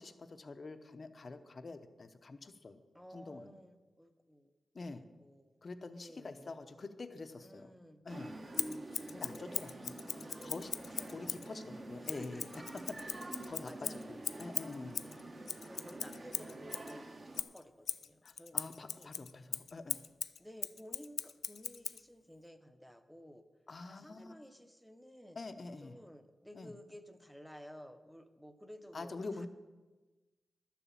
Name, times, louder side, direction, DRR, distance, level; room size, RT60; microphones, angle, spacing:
voice 1, 0.0-2.8 3.1-3.5 4.7-5.0 5.6-7.7 8.0-8.4 9.1-10.7 11.1-12.5 13.0-15.1 18.2-20.0 23.7-24.4 25.4-26.0 26.5-26.7 28.9-29.5, left 3 dB, 35° left, 9 dB, 0.7 m, -46 dB
voice 2, 2.9-4.5 4.9-6.6 7.4-8.0 9.2-10.2 11.0-11.4 12.0-12.6 13.4-14.4 15.0-15.4 15.6-17.1 17.5-19.1 20.4-23.4 23.8-25.4 25.8-29.5, equal, ahead, 8 dB, 0.7 m, -54 dB
sound 1, 8.1-17.4, right 2 dB, 35° right, 1.0 m, -47 dB
Scissors, 8.5-11.5 12.0-16.9 17.3-22.0, left 7 dB, 75° left, 0.4 m, -40 dB
12.0 x 7.0 x 7.4 m, 1.2 s
wide cardioid pair, 160°, 0 cm